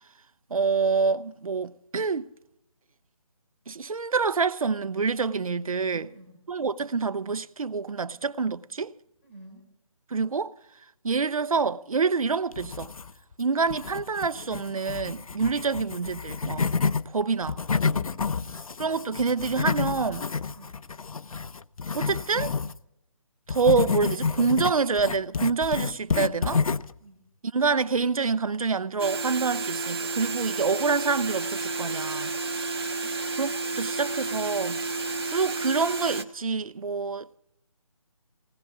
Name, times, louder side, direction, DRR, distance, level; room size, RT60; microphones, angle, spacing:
voice 1, 0.5-2.3 3.7-6.1 6.5-8.9 10.1-10.5 11.0-12.9 13.4-16.7 17.1-17.6 18.8-20.3 21.9-22.5 23.5-26.6 27.5-32.3 33.4-34.8 35.3-37.4, right 5 dB, 80° right, 0.7 m, -27 dB
voice 2, 5.9-6.3 9.2-9.7 17.8-18.6 20.5-20.8 27.0-27.2 32.9-33.2, right 2 dB, 20° left, 3.7 m, -50 dB
sound 1, 12.5-13.3 13.7-17.0 17.4-22.8 23.5-27.0, left 5 dB, 80° left, 0.7 m, -29 dB
sound 2, 29.0-36.2, right 3 dB, 45° right, 1.4 m, -31 dB
20.5 x 19.0 x 3.6 m
hypercardioid pair, 175°, 18 cm